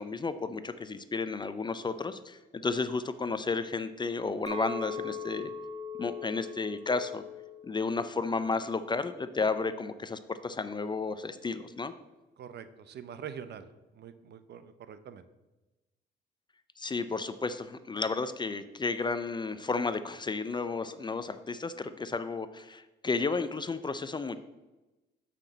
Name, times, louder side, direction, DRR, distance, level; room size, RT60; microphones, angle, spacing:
voice 1, 0.0-5.5 6.0-7.2 7.6-11.9 16.8-24.4, left 4 dB, 25° left, 12 dB, 0.4 m, -32 dB
Chink clink, 4.5-8.8 9.1-9.6, left 4 dB, 35° right, 1.1 m, -41 dB
voice 2, 12.4-13.7 14.0-15.2, right 8 dB, 60° right, 11 dB, 0.6 m, -44 dB
7.3 x 5.9 x 3.9 m, 1.1 s
cardioid pair, 90°, 20 cm